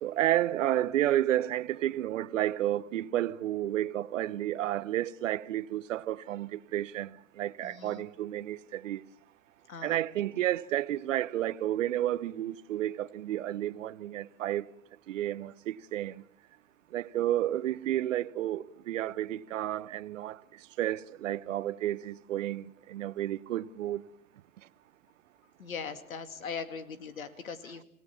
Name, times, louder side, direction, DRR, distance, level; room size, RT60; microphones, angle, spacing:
voice 1, 0.0-7.1 7.4-9.0 9.8-14.6 15.1-16.1 16.9-20.4 20.8-24.0, right 13 dB, 65° right, 0.9 m, -31 dB
voice 2, 7.6-8.1 9.7-10.4 25.6-27.8, left 6 dB, 85° left, 2.4 m, -40 dB
28.0 x 17.5 x 7.1 m
hypercardioid pair, 125°, 40 cm